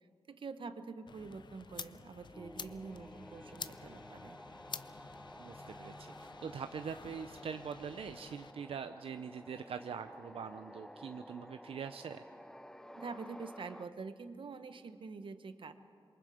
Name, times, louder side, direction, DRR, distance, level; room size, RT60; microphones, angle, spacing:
voice 1, 0.3-4.4 12.9-15.7, right 4 dB, 65° right, 10 dB, 1.1 m, -46 dB
sound 1, 1.1-8.5, left 5 dB, 55° left, 0.6 m, -50 dB
sound 2, 2.3-13.8, equal, 5° left, 0.5 m, -53 dB
voice 2, 5.4-12.2, right 6 dB, 85° right, 9 dB, 0.5 m, -43 dB
27.0 x 23.0 x 5.0 m, 2.5 s
wide cardioid pair, 140°, 9 cm